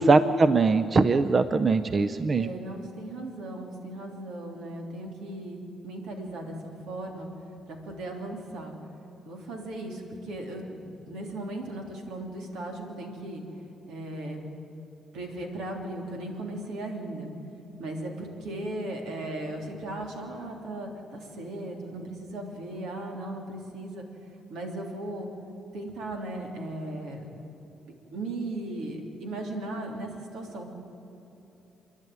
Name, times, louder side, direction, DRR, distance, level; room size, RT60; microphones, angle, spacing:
voice 1, 0.0-2.5, right 3 dB, 35° right, 12 dB, 0.6 m, -21 dB
voice 2, 2.3-7.3 7.7-8.7 9.2-13.4 13.9-14.4 15.1-17.3 17.8-24.0 24.5-25.3 25.7-27.2 28.1-30.7, right 1 dB, 85° right, 1 dB, 3.4 m, -37 dB
28.0 x 11.0 x 9.5 m, 2.9 s
cardioid pair, 90°, 0 cm